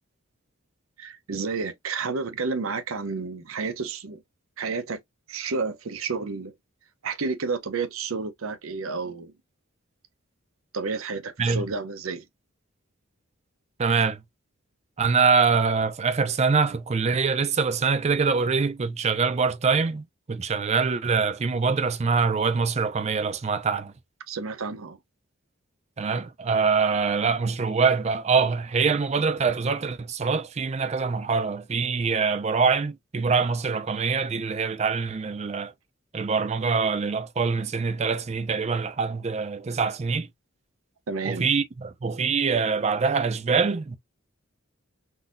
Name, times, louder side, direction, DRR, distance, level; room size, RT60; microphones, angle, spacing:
voice 1, 1.0-4.2 4.6-5.0 5.3-6.5 7.0-9.3 10.7-12.2 24.3-25.0 41.1-41.5, right 4 dB, 90° right, 0.7 m, -31 dB
voice 2, 13.8-14.2 15.0-23.9 26.0-35.7 36.1-40.3 41.2-44.0, right 5 dB, 30° right, 0.4 m, -24 dB
3.8 x 2.6 x 2.5 m
head